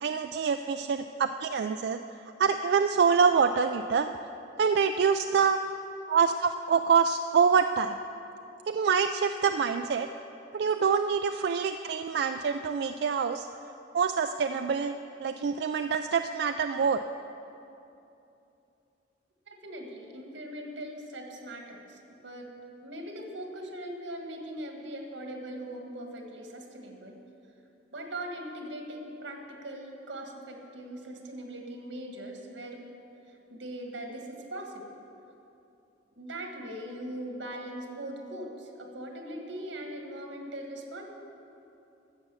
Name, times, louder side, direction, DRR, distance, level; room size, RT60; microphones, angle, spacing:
voice 1, 0.0-2.0 2.4-4.1 4.6-5.6 6.1-8.0 8.7-10.1 10.5-13.5 13.9-17.0, right 6 dB, 60° right, 7 dB, 0.3 m, -26 dB
voice 2, 19.5-22.5 22.8-27.2 27.9-32.8 33.5-35.0 36.2-41.1, right 1 dB, 90° right, 2 dB, 1.8 m, -40 dB
12.5 x 7.9 x 7.0 m, 2.8 s
head